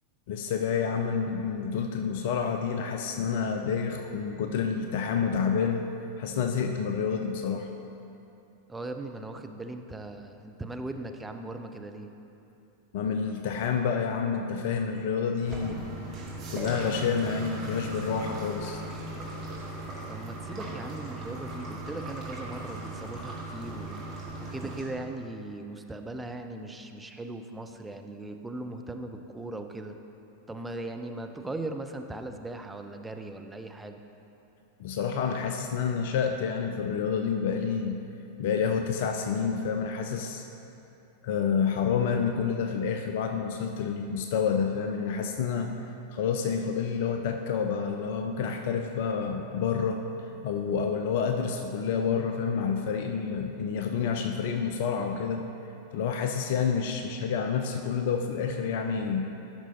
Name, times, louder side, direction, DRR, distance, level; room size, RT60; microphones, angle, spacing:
voice 1, 0.3-5.8 6.2-7.7 12.9-15.9 16.5-18.8 34.8-38.0 38.4-40.4 41.2-45.7 46.1-50.0 50.4-55.4 55.9-59.3, left 6 dB, 50° left, 5 dB, 0.4 m, -28 dB
voice 2, 8.7-12.1 20.1-24.0 24.4-30.0 30.5-34.0, right 2 dB, 10° right, 5 dB, 0.5 m, -39 dB
sound 1, 15.4-24.8, right 2 dB, 30° right, 1.7 m, -38 dB
13.5 x 6.1 x 2.8 m, 2.8 s
figure-of-eight pair, 90°, 0 cm